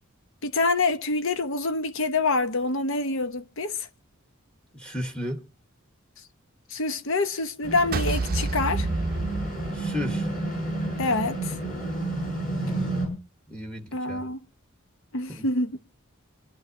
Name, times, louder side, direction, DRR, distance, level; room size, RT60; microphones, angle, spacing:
voice 1, 0.4-3.9 6.7-8.9 11.0-11.6 13.9-14.4 15.1-15.8, left 3 dB, 70° left, 1.0 m, -26 dB
voice 2, 4.7-5.4 9.7-10.3 12.6-13.1 13.5-14.3 15.3-15.4, left 1 dB, 5° left, 1.1 m, -34 dB
sound 1, 7.6-13.1, right 2 dB, 40° left, 6.8 m, -30 dB
sound 2, 7.9-10.3, right 3 dB, 45° right, 0.6 m, -29 dB
26.5 x 11.0 x 2.6 m
head